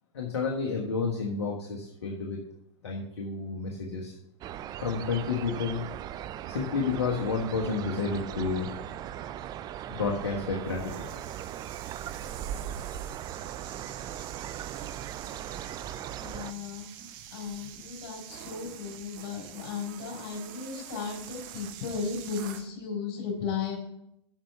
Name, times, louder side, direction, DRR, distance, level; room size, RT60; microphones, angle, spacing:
voice 1, 0.1-2.4 2.8-4.1 4.8-5.8 6.5-8.7 9.9-11.1, left 4 dB, 70° left, 0 dB, 1.4 m, -30 dB
sound 1, 4.4-16.5, right 11 dB, 25° right, 0.4 m, -39 dB
sound 2, 10.7-22.7, right 9 dB, 50° right, 0.9 m, -44 dB
voice 2, 16.2-16.9 17.3-23.8, left 5 dB, 50° left, -1 dB, 4.2 m, -35 dB
7.4 x 6.0 x 6.7 m, 0.77 s
figure-of-eight pair, 90°, 15 cm